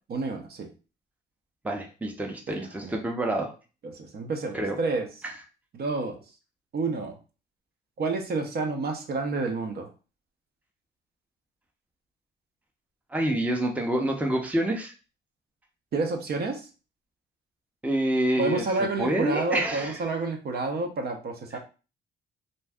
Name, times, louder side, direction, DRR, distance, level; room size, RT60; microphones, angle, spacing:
voice 1, 0.1-0.7 2.5-2.6 2.8-3.0 3.8-5.1 5.7-6.2 6.7-7.2 8.0-9.9 15.9-16.7 18.4-21.6, right 3 dB, 50° right, 4 dB, 0.7 m, -29 dB
voice 2, 1.6-3.5 4.5-4.8 5.2-5.3 13.1-14.9 17.8-20.0 21.5-21.6, right 1 dB, 5° right, 2 dB, 0.6 m, -27 dB
2.6 x 2.2 x 3.4 m, 0.33 s
cardioid pair, 90°, 20 cm